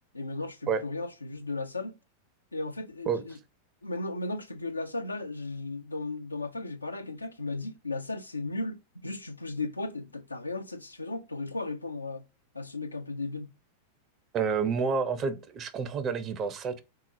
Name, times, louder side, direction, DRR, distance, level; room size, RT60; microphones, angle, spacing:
voice 1, 0.1-1.9 2.5-3.4 3.8-12.2 12.5-13.5, left 2 dB, 80° left, 0.4 m, -35 dB
voice 2, 14.3-16.8, right 5 dB, 30° right, 0.5 m, -29 dB
3.6 x 2.8 x 2.4 m
figure-of-eight pair, 90°, 0 cm